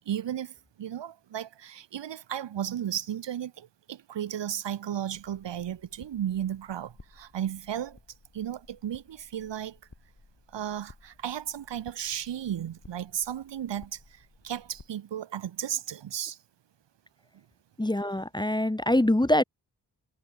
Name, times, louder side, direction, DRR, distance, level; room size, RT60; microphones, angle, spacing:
voice 1, 0.1-8.0 8.3-9.8 10.5-16.4, right 10 dB, 75° right, 0.6 m, -34 dB
sound 1, 5.1-14.9, left 3 dB, 45° left, 4.7 m, -57 dB
voice 2, 17.8-19.4, left 1 dB, 10° left, 0.7 m, -24 dB
cardioid pair, 45°, 43 cm